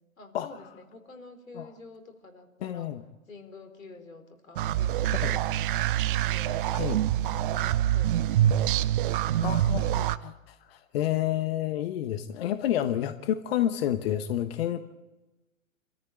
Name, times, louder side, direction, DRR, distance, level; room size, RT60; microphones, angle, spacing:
voice 1, 0.2-2.9 3.3-5.6 6.1-8.7 9.0-10.0 13.2-13.4, left 3 dB, 75° left, 7 dB, 4.3 m, -49 dB
voice 2, 2.6-3.0 5.1-5.4 6.7-7.0 9.4-14.8, left 11 dB, 45° left, 10 dB, 1.2 m, -30 dB
sound 1, 4.6-10.2, right 11 dB, 40° right, 0.8 m, -25 dB
27.5 x 14.0 x 9.3 m, 1.1 s
figure-of-eight pair, 115°, 40 cm